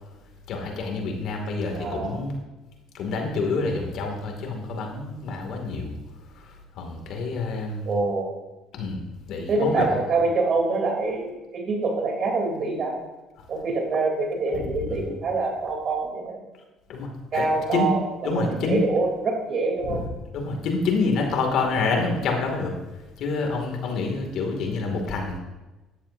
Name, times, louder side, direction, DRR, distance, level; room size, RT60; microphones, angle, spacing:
voice 1, 0.5-2.4 2.9-5.9 6.4-6.5 6.8-8.0 8.7-9.0 9.3-10.0 14.9-15.1 16.9-17.4 17.7-17.9 18.2-18.8 19.8-20.0 20.3-22.7 23.2-25.4, left 3 dB, 65° left, 2 dB, 2.5 m, -27 dB
voice 2, 1.7-2.2 7.8-8.3 9.5-13.0 13.5-16.4 17.3-20.0, right 3 dB, 50° right, 1 dB, 3.4 m, -25 dB
13.0 x 11.0 x 2.8 m, 1.1 s
supercardioid pair, 75°, 0 cm